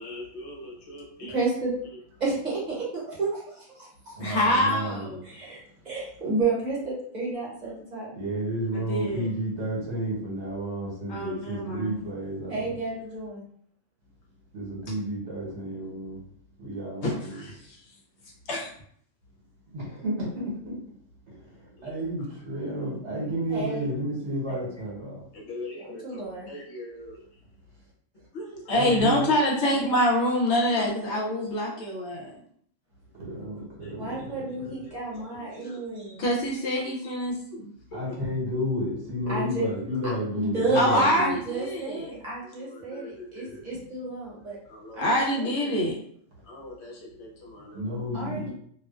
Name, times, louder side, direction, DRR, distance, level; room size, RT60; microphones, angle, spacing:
voice 1, 0.0-1.3 4.2-5.2 8.7-9.3 11.1-11.9 17.0-17.8 18.5-18.7 21.8-21.9 25.3-27.1 28.3-32.4 33.8-33.9 35.6-35.8 36.2-38.0 39.3-39.4 40.7-42.1 42.7-43.6 44.7-46.0 46.5-47.8, left 1 dB, 65° left, -2 dB, 0.8 m, -28 dB
voice 2, 1.3-1.7 2.2-4.2 5.2-5.6 5.8-8.1 12.5-13.4 23.5-23.9 25.8-26.5 34.0-36.2 39.3-39.6 40.3-44.6 44.9-45.7 48.1-48.5, right 3 dB, 40° right, -7 dB, 0.9 m, -31 dB
voice 3, 4.1-5.2 8.1-12.7 14.5-16.2 16.6-17.4 19.7-20.8 21.3-25.2 28.7-29.2 33.1-34.7 37.9-41.4 47.6-48.5, equal, 65° right, -4 dB, 1.1 m, -32 dB
2.4 x 2.2 x 2.3 m, 0.64 s
omnidirectional pair, 1.4 m